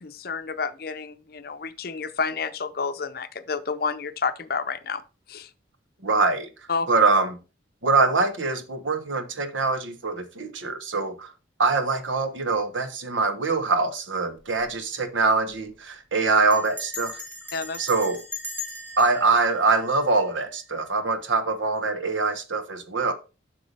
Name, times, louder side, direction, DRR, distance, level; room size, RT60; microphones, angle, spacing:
voice 1, 0.0-5.0 5.3-5.5 6.7-6.9 17.5-17.8, left 5 dB, 50° left, 0.6 m, -30 dB
voice 2, 6.0-6.5 6.9-7.4 7.8-11.3 11.6-17.2 17.8-18.2 19.0-23.1, right 3 dB, 85° right, 1.2 m, -23 dB
Bell, 14.4-14.7 15.0-15.1 15.3-15.7 16.5-20.6, left 2 dB, 10° right, 1.2 m, -39 dB
8.1 x 6.0 x 3.3 m
head